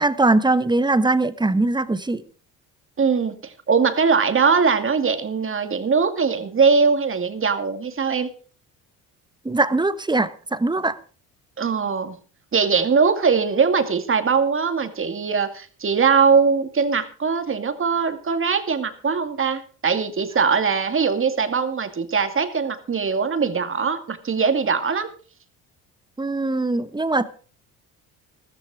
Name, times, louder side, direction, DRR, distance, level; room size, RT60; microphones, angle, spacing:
voice 1, 0.0-2.2 9.4-11.0 26.2-27.2, right 2 dB, 10° right, 1.2 m, -21 dB
voice 2, 3.0-8.3 11.6-12.2 12.5-25.1, right 5 dB, 35° right, 2.3 m, -21 dB
14.0 x 14.0 x 4.9 m
supercardioid pair, 80°, 38 cm